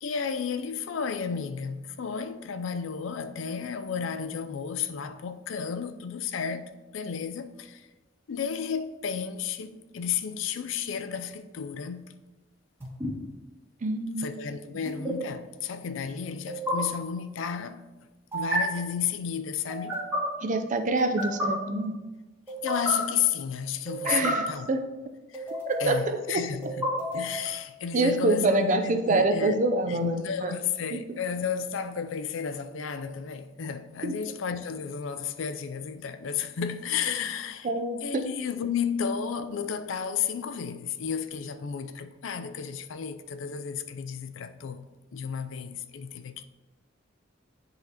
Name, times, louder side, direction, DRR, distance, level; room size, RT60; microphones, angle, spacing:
voice 1, 0.0-7.9 8.3-12.1 14.2-17.9 18.3-20.0 22.6-24.7 25.3-25.4 25.8-26.9 27.1-29.6 29.9-37.7 38.0-44.8 45.1-46.4, left 7 dB, 70° left, 0.4 m, -32 dB
sound 1, 12.8-13.1 14.8-15.1 16.5-16.7 18.3-18.6 19.7-20.2 21.0-21.5 22.5-22.9 23.9-24.3 25.3-25.9 26.6-27.5, right 1 dB, 10° right, 1.9 m, -31 dB
voice 2, 13.8-14.4 20.4-21.9 24.1-24.8 25.7-26.4 27.9-30.5 30.9-31.0 34.0-34.1 37.6-38.2, right 2 dB, 40° right, 0.5 m, -26 dB
10.5 x 4.0 x 2.9 m
head